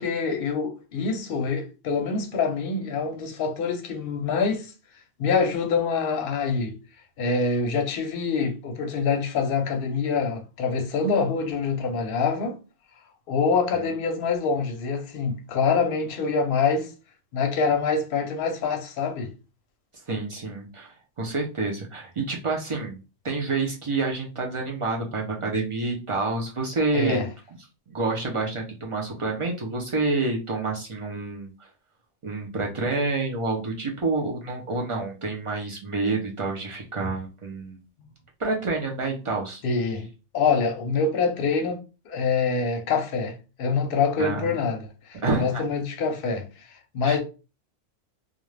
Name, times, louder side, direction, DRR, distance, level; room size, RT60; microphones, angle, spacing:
voice 1, 0.0-4.7 5.2-6.7 7.2-12.5 13.3-16.9 17.3-19.3 26.9-27.3 39.6-40.1 40.3-41.8 42.1-47.2, left 5 dB, 55° left, 0.7 m, -25 dB
voice 2, 20.1-23.0 23.2-27.2 27.9-31.7 32.2-37.8 38.4-39.6 44.2-44.5 45.2-45.6 47.0-47.2, right 3 dB, 55° right, 0.3 m, -28 dB
2.4 x 2.2 x 3.1 m
omnidirectional pair, 1.3 m